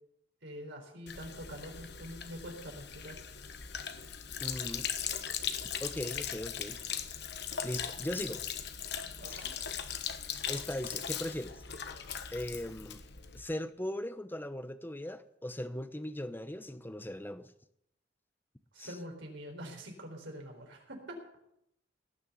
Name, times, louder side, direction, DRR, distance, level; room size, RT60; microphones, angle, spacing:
voice 1, 0.4-3.2 9.2-9.5 18.7-21.2, equal, 70° right, 2 dB, 4.1 m, -45 dB
Sink (filling or washing), 1.1-13.4, left 8 dB, 60° left, 1.2 m, -39 dB
voice 2, 4.4-4.9 5.8-6.8 7.6-8.4 9.3-9.4 10.5-11.6 12.3-13.0 13.3-17.5 18.8-18.9, left 1 dB, 10° left, 11 dB, 0.8 m, -39 dB
18.5 x 6.7 x 9.3 m, 0.78 s
head